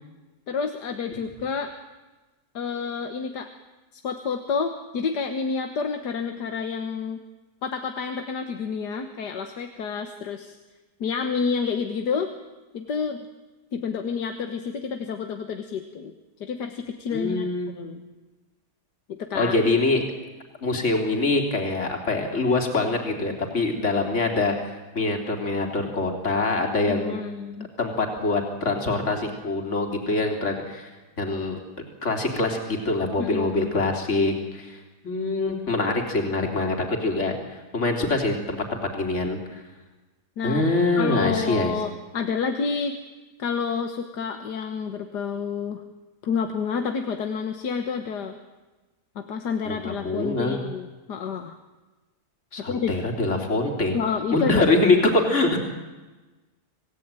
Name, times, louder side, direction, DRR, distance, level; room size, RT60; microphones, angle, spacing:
voice 1, 0.5-1.7 2.5-3.5 4.0-7.2 7.6-10.6 11.0-12.3 12.7-13.3 13.7-16.1 16.4-18.0 19.1-19.5 26.9-27.7 33.2-33.8 40.4-40.6 41.0-43.0 43.4-45.8 46.2-48.4 49.2-51.6 52.7-52.9 53.9-54.6, left 5 dB, 85° left, 6 dB, 1.9 m, -29 dB
voice 2, 17.1-17.7 19.3-20.0 20.6-27.2 27.8-30.9 31.2-31.6 32.0-39.6 40.4-41.7 49.7-50.6 52.5-53.9 54.3-55.6, left 2 dB, 45° left, 2 dB, 3.6 m, -24 dB
27.0 x 17.5 x 9.1 m, 1.2 s
omnidirectional pair, 1.7 m